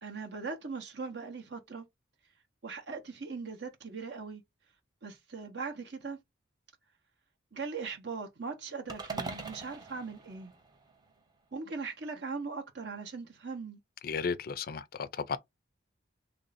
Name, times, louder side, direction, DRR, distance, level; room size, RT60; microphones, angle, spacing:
voice 1, 0.0-1.8 2.6-4.4 5.0-6.2 7.5-10.5 11.5-13.8, right 4 dB, 60° right, 0.8 m, -40 dB
sound 1, 8.9-11.2, right 3 dB, 20° right, 0.6 m, -42 dB
voice 2, 14.0-15.4, left 5 dB, 45° left, 0.4 m, -34 dB
3.2 x 2.6 x 3.9 m
head